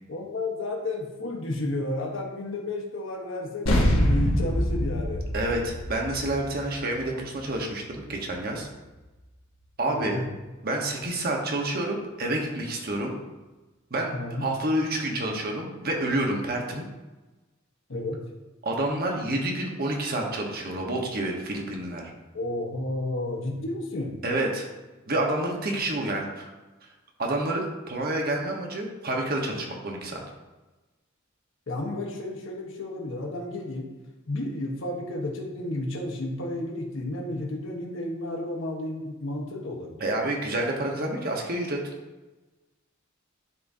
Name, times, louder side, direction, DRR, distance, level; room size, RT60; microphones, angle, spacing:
voice 1, 0.1-5.3 9.9-10.3 14.1-14.5 16.7-16.8 17.9-18.2 22.3-24.2 31.7-33.9 34.3-40.2, left 2 dB, 70° left, 0 dB, 1.2 m, -32 dB
sound 1, 3.7-8.4, equal, 90° left, 1.2 m, -26 dB
voice 2, 5.3-8.7 9.8-10.2 10.6-13.2 13.9-14.1 14.4-16.9 18.6-22.1 24.2-24.7 25.1-26.5 27.2-30.2 40.0-41.9, right 1 dB, 50° right, 1 dB, 1.1 m, -28 dB
11.0 x 3.6 x 2.7 m, 1.1 s
head